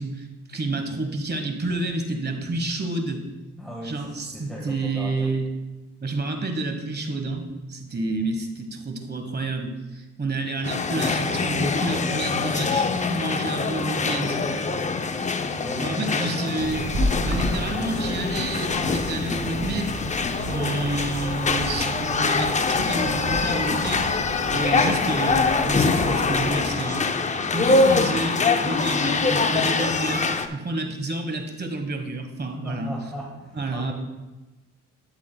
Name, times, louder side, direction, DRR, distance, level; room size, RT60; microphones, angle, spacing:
voice 1, 0.0-3.2 3.8-5.5 6.0-7.4 7.7-14.5 15.8-16.8 17.2-20.0 20.5-24.0 24.5-27.1 27.5-30.3 30.5-32.9 33.5-33.9, right 2 dB, 35° right, 5 dB, 1.3 m, -29 dB
voice 2, 3.6-5.3 14.0-14.4 15.6-16.5 32.6-33.9, equal, ahead, -4 dB, 1.5 m, -36 dB
sound 1, 10.6-30.5, left 4 dB, 25° left, 0.5 m, -24 dB
sound 2, 16.6-26.5, right 1 dB, 50° right, 2.4 m, -32 dB
12.0 x 7.4 x 2.3 m, 1.1 s
cardioid pair, 90°, 30 cm